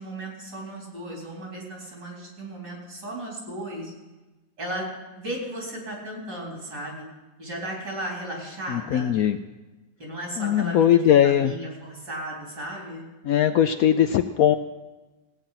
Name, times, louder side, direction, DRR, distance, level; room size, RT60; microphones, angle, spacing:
voice 1, 0.0-3.9 4.6-4.9 5.1-7.0 7.4-9.1 10.0-13.0, right 1 dB, 70° right, -2 dB, 4.5 m, -35 dB
voice 2, 8.7-9.4 10.4-11.5 13.3-14.6, left 10 dB, 70° left, 9 dB, 0.8 m, -20 dB
17.0 x 9.0 x 5.7 m, 1.1 s
omnidirectional pair, 1.9 m